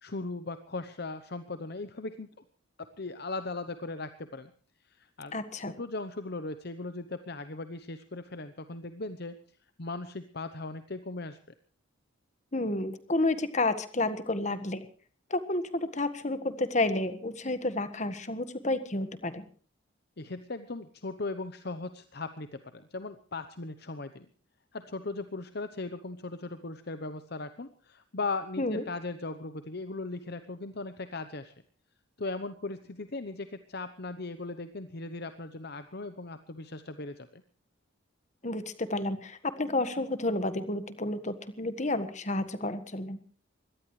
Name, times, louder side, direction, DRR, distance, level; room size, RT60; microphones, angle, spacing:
voice 1, 0.0-2.3 2.8-4.5 5.0-5.3 5.6-9.3 9.8-11.4 20.2-24.3 24.7-31.5 32.2-37.4, left 3 dB, 50° left, 10 dB, 0.9 m, -38 dB
voice 2, 5.3-5.7 12.5-14.9 15.3-19.4 28.6-28.8 38.4-43.2, left 2 dB, 35° left, 11 dB, 1.6 m, -30 dB
24.0 x 18.0 x 3.3 m, 0.43 s
head